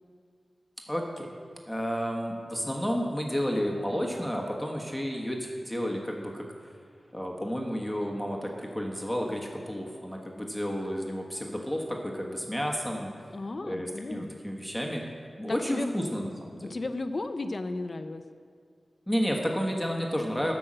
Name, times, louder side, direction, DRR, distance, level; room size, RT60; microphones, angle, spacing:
voice 1, 0.9-1.3 1.7-6.7 7.1-13.1 13.6-15.0 15.4-16.7 19.1-20.5, equal, ahead, -1 dB, 1.3 m, -31 dB
voice 2, 13.3-14.3 15.5-16.0 16.6-18.2, left 2 dB, 45° left, 9 dB, 0.6 m, -34 dB
12.5 x 6.3 x 7.5 m, 2.2 s
wide cardioid pair, 105°, 0 cm